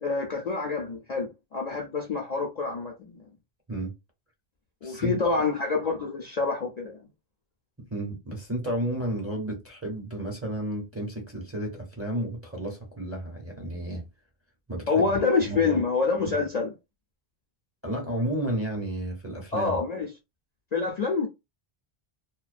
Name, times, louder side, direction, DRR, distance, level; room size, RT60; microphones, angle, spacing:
voice 1, 0.0-3.2 4.8-7.0 14.9-16.7 19.5-20.1 20.7-21.3, left 4 dB, 50° left, 0.5 m, -27 dB
voice 2, 4.8-5.4 7.8-14.1 14.7-15.8 17.8-19.8, right 1 dB, 15° right, 0.6 m, -32 dB
2.3 x 2.2 x 2.4 m
omnidirectional pair, 1.1 m